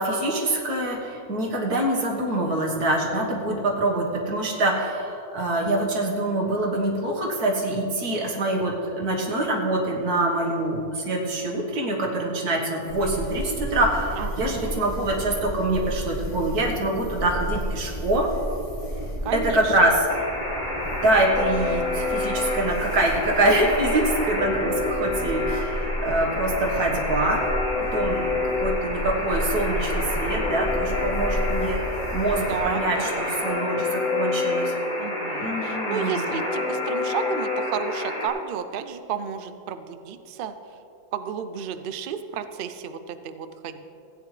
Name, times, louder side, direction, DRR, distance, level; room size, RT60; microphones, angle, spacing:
voice 1, 0.0-18.3 19.3-19.9 21.0-27.4 27.9-31.8 32.1-34.7 35.4-36.3, right 1 dB, 90° right, -1 dB, 2.0 m, -25 dB
sound 1, 12.9-32.6, equal, 25° left, 1.2 m, -32 dB
voice 2, 14.2-14.7 19.2-20.0 32.3-33.2 35.0-40.8 41.1-43.9, right 8 dB, 75° right, 10 dB, 0.5 m, -32 dB
Alarm, 20.1-38.3, left 2 dB, 65° left, 2.3 m, -28 dB
15.5 x 9.3 x 3.3 m, 2.7 s
omnidirectional pair, 1.6 m